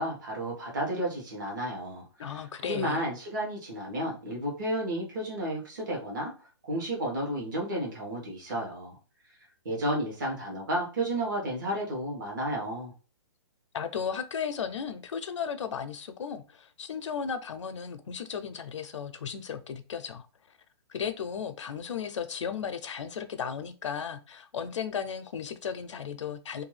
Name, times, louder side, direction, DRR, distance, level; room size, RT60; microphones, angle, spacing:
voice 1, 0.0-6.3 6.6-9.0 9.6-12.9, right 1 dB, 40° right, 1.1 m, -32 dB
voice 2, 2.2-3.1 13.7-20.3 20.9-26.6, left 7 dB, 85° left, 0.5 m, -35 dB
2.6 x 2.3 x 3.2 m
hypercardioid pair, 175°, 15 cm